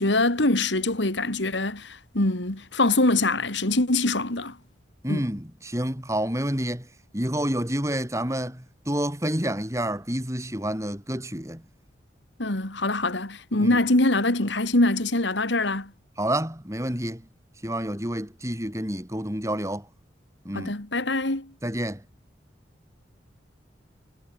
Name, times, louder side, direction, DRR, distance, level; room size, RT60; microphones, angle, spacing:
voice 1, 0.0-4.6 5.1-5.3 12.4-15.9 20.5-21.5, left 2 dB, 80° left, 2.9 m, -24 dB
voice 2, 5.0-6.9 7.1-11.6 13.6-13.8 16.2-17.2 17.6-19.9 20.4-20.7 21.6-22.0, right 1 dB, 15° right, 6.6 m, -29 dB
head